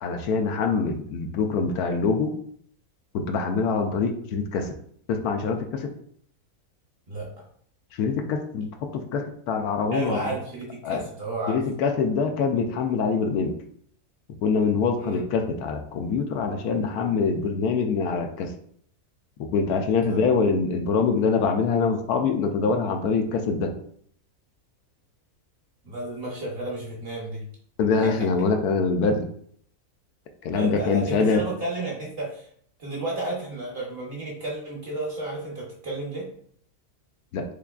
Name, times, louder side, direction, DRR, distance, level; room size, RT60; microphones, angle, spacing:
voice 1, 0.0-2.3 3.1-4.7 5.1-5.9 7.9-10.4 10.8-11.0 11.5-13.5 14.4-18.5 19.5-23.7 27.8-29.3 30.4-31.4 37.3-37.4, left 5 dB, 80° left, 4 dB, 1.1 m, -24 dB
voice 2, 7.1-7.4 9.9-11.6 15.0-15.2 20.1-20.2 25.8-27.4 28.0-28.1 30.5-32.5 32.8-36.2, right 2 dB, 45° right, -3 dB, 0.9 m, -32 dB
3.6 x 3.2 x 2.3 m, 0.63 s
omnidirectional pair, 1.6 m